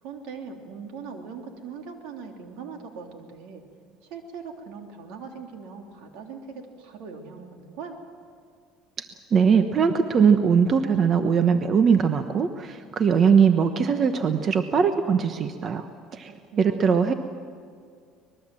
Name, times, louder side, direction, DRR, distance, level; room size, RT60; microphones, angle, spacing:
voice 1, 0.0-3.6 4.0-8.0 16.5-17.1, right 5 dB, 75° right, 3 dB, 3.0 m, -40 dB
voice 2, 9.3-15.9 16.1-16.3 16.6-17.1, right 6 dB, 35° right, 8 dB, 1.0 m, -20 dB
24.5 x 20.5 x 7.6 m, 2.2 s
cardioid pair, 135°, 0 cm